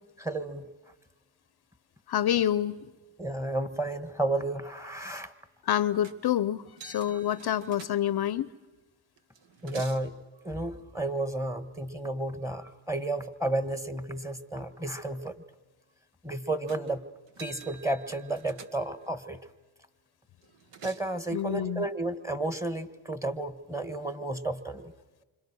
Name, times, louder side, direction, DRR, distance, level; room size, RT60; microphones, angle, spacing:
voice 1, 0.2-0.7 3.2-5.3 9.6-15.4 16.2-17.0 17.4-19.4 20.8-24.9, right 2 dB, 5° right, 10 dB, 1.6 m, -32 dB
voice 2, 2.1-2.9 5.6-8.5 21.3-21.8, left 11 dB, 55° left, 17 dB, 0.7 m, -27 dB
sound 1, 6.0-6.4 6.8-8.4 9.2-10.1 16.7-16.9 17.3-19.1 20.4-21.2, right 6 dB, 70° right, 1.8 m, -49 dB
29.0 x 25.5 x 6.3 m, 1.2 s
cardioid pair, 75°, 46 cm